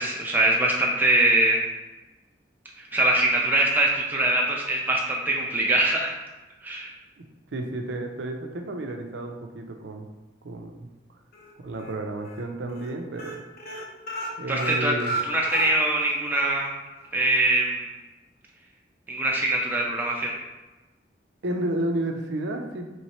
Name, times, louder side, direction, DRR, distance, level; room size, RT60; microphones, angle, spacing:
voice 1, 0.0-1.6 2.8-6.1 6.6-6.9 14.5-14.9 15.3-16.7 17.1-17.9 19.1-20.3, right 2 dB, 10° right, -2 dB, 0.4 m, -23 dB
voice 2, 7.5-10.1 10.4-10.9 11.6-13.4 14.4-15.1 21.4-22.9, right 1 dB, 85° right, 4 dB, 0.5 m, -31 dB
sound 1, 11.3-11.9 12.2-12.4 12.7-12.9 13.2-16.2 16.5-16.6 17.0-17.1, right 1 dB, 55° left, 0.7 m, -33 dB
3.2 x 3.1 x 4.2 m, 1.2 s
head